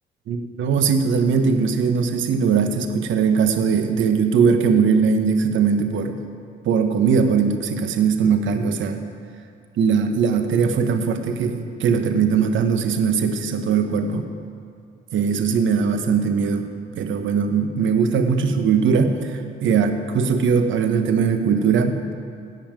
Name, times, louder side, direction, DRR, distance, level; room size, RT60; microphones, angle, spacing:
voice 1, 0.3-6.2 6.6-9.0 9.8-14.3 15.1-16.7 16.9-22.1, right 6 dB, 75° right, 7 dB, 1.2 m, -20 dB
16.0 x 5.8 x 9.0 m, 2.3 s
cardioid pair, 90°, 20 cm